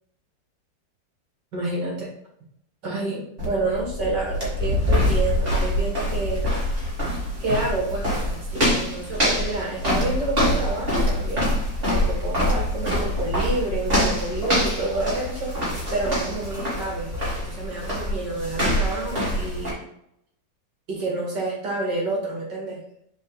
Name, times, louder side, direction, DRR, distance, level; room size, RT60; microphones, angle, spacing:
voice 1, 1.5-2.1 2.8-6.5 6.8-6.9 7.4-11.5 11.8-15.5 15.9-19.8 20.9-22.8, right 2 dB, 65° right, -3 dB, 2.8 m, -29 dB
sound 1, 3.4-19.7, left 1 dB, 30° right, 3.3 m, -25 dB
7.7 x 5.0 x 3.4 m, 0.74 s
omnidirectional pair, 2.0 m